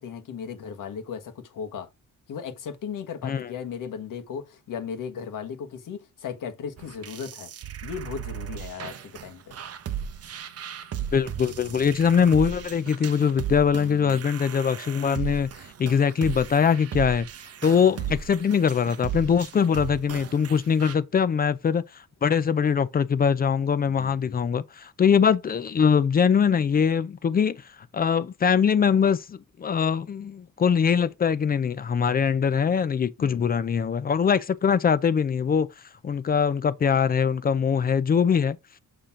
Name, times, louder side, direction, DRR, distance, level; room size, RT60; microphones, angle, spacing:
voice 1, 0.0-1.9 2.3-7.5 7.8-9.6 17.8-18.1 23.8-24.4 33.2-33.5, left 7 dB, 65° left, 1.5 m, -36 dB
sound 1, 6.8-20.9, right 9 dB, 45° right, 0.9 m, -36 dB
voice 2, 11.1-15.5 15.8-17.3 17.6-27.6 27.9-35.7 36.0-38.6, left 7 dB, 30° left, 0.4 m, -22 dB
6.7 x 5.8 x 3.7 m
cardioid pair, 170°, 34 cm